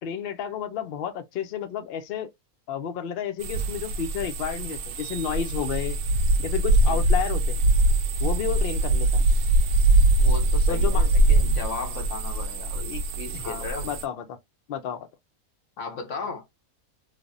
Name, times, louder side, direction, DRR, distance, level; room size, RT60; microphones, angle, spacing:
voice 1, 0.0-2.3 2.7-6.0 6.4-7.6 8.2-9.2 10.7-11.1 13.3-14.4 14.7-15.1, left 8 dB, 80° left, 0.5 m, -31 dB
sound 1, 3.4-14.0, right 2 dB, 85° right, 1.1 m, -22 dB
voice 2, 10.2-13.9 15.8-16.4, left 4 dB, 60° left, 1.1 m, -35 dB
3.3 x 2.1 x 2.5 m
omnidirectional pair, 1.5 m